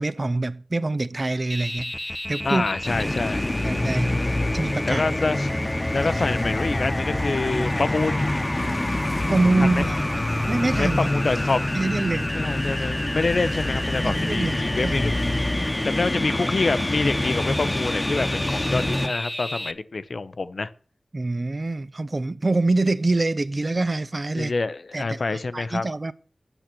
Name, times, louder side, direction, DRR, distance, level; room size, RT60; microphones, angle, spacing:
voice 1, 0.0-1.9 2.3-2.6 3.6-5.0 9.3-10.0 10.5-11.0 11.7-12.3 14.0-15.0 21.1-24.5 24.9-26.1, right 2 dB, 45° right, 0.5 m, -25 dB
sound 1, 1.5-19.7, left 1 dB, 15° left, 0.6 m, -32 dB
voice 2, 2.4-3.5 4.9-5.5 5.9-8.3 9.6-9.8 10.8-11.7 12.4-15.1 15.8-20.7 24.3-25.9, left 3 dB, 65° left, 0.7 m, -26 dB
sound 2, 2.8-19.1, left 1 dB, 30° left, 1.1 m, -26 dB
9.0 x 8.2 x 6.0 m
wide cardioid pair, 60°, 0 cm